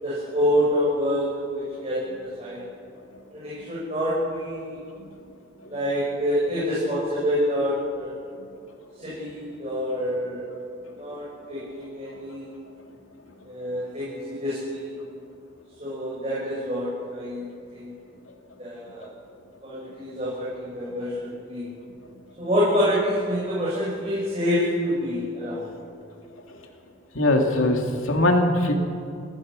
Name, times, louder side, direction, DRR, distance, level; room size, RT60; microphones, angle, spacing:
voice 1, 0.0-2.6 3.3-4.8 5.7-8.1 9.0-10.5 11.0-12.4 13.4-14.9 15.8-17.9 18.6-19.1 19.6-21.7 22.4-25.7, equal, 30° right, -8 dB, 6.7 m, -27 dB
voice 2, 27.1-28.7, left 1 dB, 80° left, 2 dB, 2.6 m, -21 dB
29.5 x 16.5 x 6.5 m, 2.3 s
head